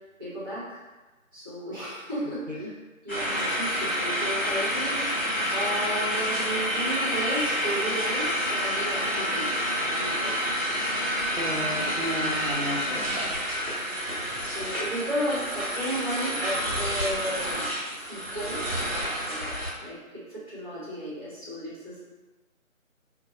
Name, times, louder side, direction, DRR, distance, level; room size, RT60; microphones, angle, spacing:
voice 1, 0.2-0.8 1.3-2.7 3.0-5.2 5.5-10.5 13.9-22.0, equal, 15° right, -11 dB, 1.0 m, -34 dB
sound 1, 3.1-19.7, equal, ahead, 1.2 m, -28 dB
voice 2, 11.4-13.4 14.3-14.4, equal, 60° right, -3 dB, 0.8 m, -33 dB
5.6 x 2.2 x 2.7 m, 1.2 s
figure-of-eight pair, 160°, 41 cm